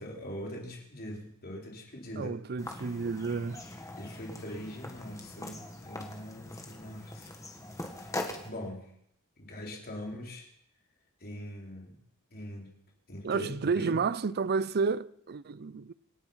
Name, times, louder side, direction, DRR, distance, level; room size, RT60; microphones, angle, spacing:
voice 1, 0.0-2.3 4.0-7.3 8.4-8.9 9.4-10.5 11.2-12.0 12.3-12.7 13.1-14.0, equal, 45° left, 4.0 m, -42 dB
voice 2, 2.1-3.6 13.2-15.9, right 5 dB, 45° right, 0.5 m, -31 dB
sound 1, 2.6-8.5, left 1 dB, 15° left, 1.9 m, -42 dB
27.0 x 9.3 x 5.7 m
head